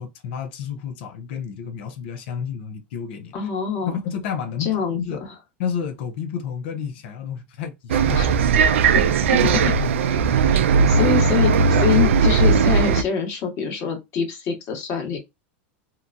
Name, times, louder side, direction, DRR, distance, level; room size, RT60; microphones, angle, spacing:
voice 1, 0.0-3.3 3.8-5.2 5.6-8.3 9.4-9.9, left 7 dB, 70° left, 0.7 m, -31 dB
voice 2, 3.3-4.0 4.6-5.3 8.1-8.4 8.9-9.1 9.3-9.7 10.9-15.2, left 7 dB, 45° left, 1.4 m, -25 dB
Bus, 7.9-13.0, right 5 dB, 90° right, 0.3 m, -17 dB
2.8 x 2.3 x 2.5 m
supercardioid pair, 120°, 7 cm